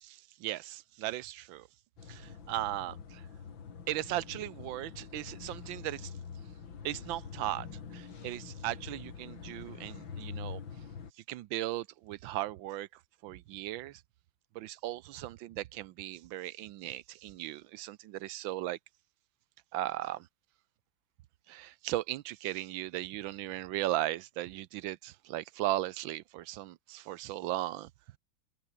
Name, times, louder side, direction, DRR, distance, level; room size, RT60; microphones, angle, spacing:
voice 1, 0.0-1.7 2.1-3.2 3.9-6.1 6.8-7.7 7.9-10.6 11.3-12.9 13.2-14.0 14.5-18.8 19.7-20.3 21.5-27.9, right 15 dB, 75° right, 1.4 m, -37 dB
sound 1, 2.0-11.1, left 6 dB, 75° left, 3.0 m, -45 dB
open air
omnidirectional pair, 2.2 m